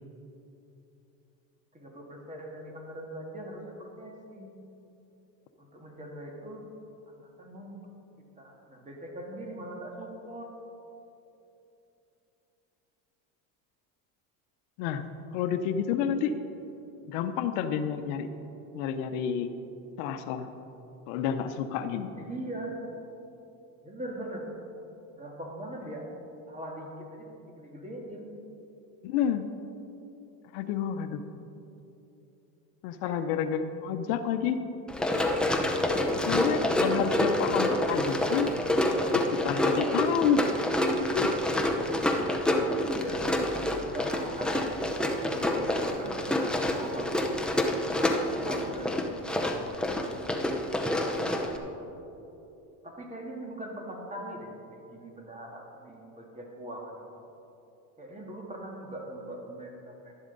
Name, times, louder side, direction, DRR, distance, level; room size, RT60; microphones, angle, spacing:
voice 1, 1.7-4.6 5.6-6.7 7.1-7.8 8.4-10.5 22.2-22.8 23.8-24.5 25.1-26.1 26.5-28.3 33.0-33.2 42.7-43.3 43.8-44.6 45.1-47.2 47.9-49.0 52.8-57.1 58.0-60.1, right 1 dB, 15° right, 0 dB, 1.9 m, -41 dB
voice 2, 15.3-16.3 17.1-18.3 18.7-19.5 20.0-20.5 21.1-22.1 29.0-29.4 30.5-31.2 32.8-34.6 36.2-38.5 39.1-40.4 41.1-41.3, left 8 dB, 80° left, 9 dB, 0.8 m, -29 dB
Run, 34.9-51.6, left 1 dB, ahead, 0.7 m, -28 dB
11.5 x 11.0 x 4.0 m, 2.9 s
cardioid pair, 125°, 41 cm